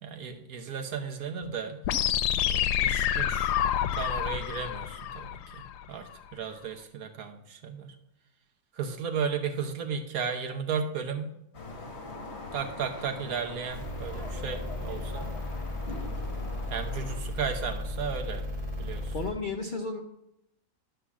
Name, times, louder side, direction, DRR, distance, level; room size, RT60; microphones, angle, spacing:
voice 1, 0.0-1.8 2.5-3.5 3.9-7.9 8.7-11.3 12.5-15.3 16.7-18.4 18.8-19.1, right 6 dB, 65° right, 5 dB, 1.2 m, -34 dB
sound 1, 1.8-5.8, left 10 dB, 85° left, 1.2 m, -28 dB
sound 2, 11.5-17.2, left 3 dB, 45° left, 1.7 m, -41 dB
sound 3, 13.7-19.3, left 1 dB, 5° right, 3.8 m, -35 dB
voice 2, 19.1-20.0, left 3 dB, 65° left, 3 dB, 0.5 m, -33 dB
11.0 x 3.8 x 7.1 m, 0.85 s
omnidirectional pair, 1.7 m